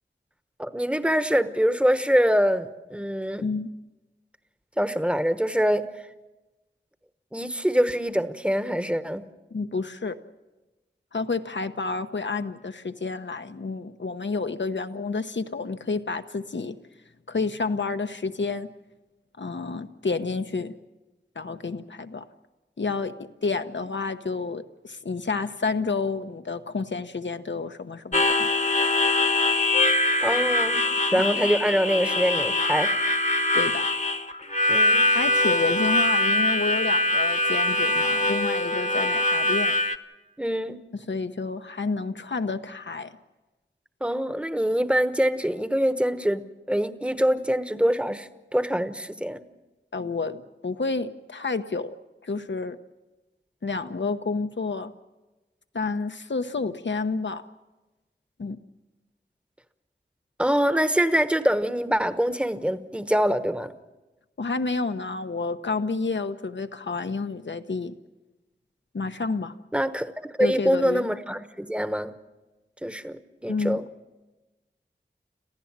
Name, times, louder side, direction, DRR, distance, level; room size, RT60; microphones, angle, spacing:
voice 1, 0.6-3.4 4.8-5.9 7.3-9.3 30.2-32.9 34.7-35.1 40.4-40.8 44.0-49.4 60.4-63.7 69.7-70.1 70.4-72.1 72.8-73.8, equal, 5° right, 11 dB, 1.1 m, -24 dB
voice 2, 9.5-10.2 11.1-16.8 17.3-18.7 19.4-20.7 21.4-22.3 22.8-28.5 31.1-31.2 33.5-33.9 35.1-39.7 41.1-43.2 49.9-51.9 52.2-52.8 53.6-54.9 55.7-57.5 58.4-58.6 64.4-67.9 68.9-69.5 70.4-71.1 73.5-73.8, left 4 dB, 75° left, 9 dB, 1.0 m, -30 dB
Harmonica, 28.1-40.0, left 2 dB, 40° left, 1.2 m, -23 dB
27.0 x 15.0 x 7.4 m, 1.1 s
wide cardioid pair, 50°, 19 cm